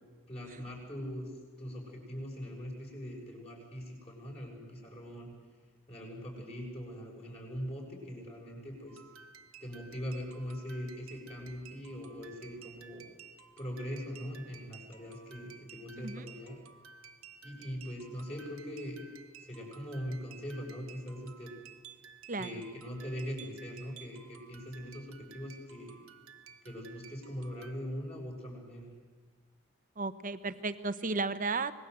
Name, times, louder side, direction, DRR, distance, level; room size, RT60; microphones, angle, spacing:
voice 1, 0.3-1.3 1.6-5.3 5.9-9.0 9.6-13.0 13.6-16.6 17.4-19.0 19.4-21.5 22.4-26.0 26.6-28.9, equal, 30° left, -1 dB, 6.8 m, -41 dB
Music Box Playing Prelude in C, 8.9-27.7, right 7 dB, 85° right, 1.3 m, -55 dB
voice 2, 16.0-16.3 22.3-22.6 30.0-31.7, right 3 dB, 40° right, 12 dB, 1.0 m, -34 dB
26.0 x 20.0 x 8.0 m, 1.4 s
head